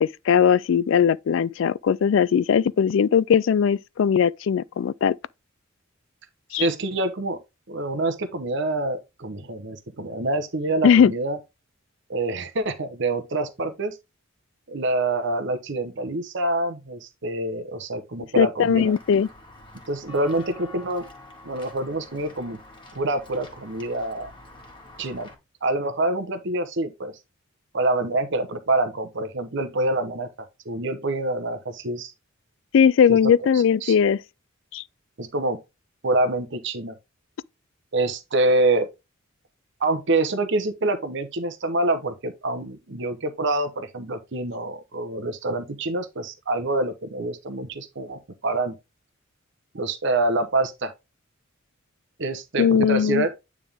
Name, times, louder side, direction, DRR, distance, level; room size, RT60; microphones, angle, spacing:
voice 1, 0.0-5.2 6.5-6.7 10.8-11.1 18.4-19.3 32.7-34.2 34.7-34.8 52.6-53.3, left 7 dB, 70° left, 0.3 m, -19 dB
voice 2, 6.5-7.4 7.7-11.4 12.1-14.0 14.7-18.9 19.9-21.0 21.4-22.6 22.9-24.3 25.0-25.3 25.6-27.1 27.7-32.1 33.1-33.3 33.8-33.9 35.2-35.6 36.0-36.9 37.9-38.9 39.8-48.7 49.7-50.9 52.2-53.3, right 2 dB, 65° right, 0.9 m, -26 dB
Walk footsteps / Bell, 18.7-25.3, left 2 dB, 25° left, 1.9 m, -46 dB
9.2 x 3.6 x 3.5 m
head